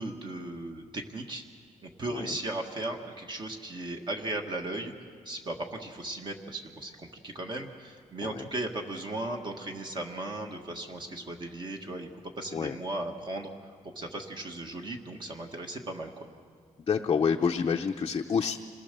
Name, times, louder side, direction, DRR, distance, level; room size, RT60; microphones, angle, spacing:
voice 1, 0.0-1.4 1.8-4.9 5.2-12.1 12.4-13.5 13.8-16.3, right 2 dB, 35° right, 3 dB, 1.6 m, -36 dB
voice 2, 16.9-18.6, left 6 dB, 35° left, 2 dB, 0.7 m, -28 dB
27.0 x 19.5 x 6.8 m, 2.1 s
wide cardioid pair, 170°, 14 cm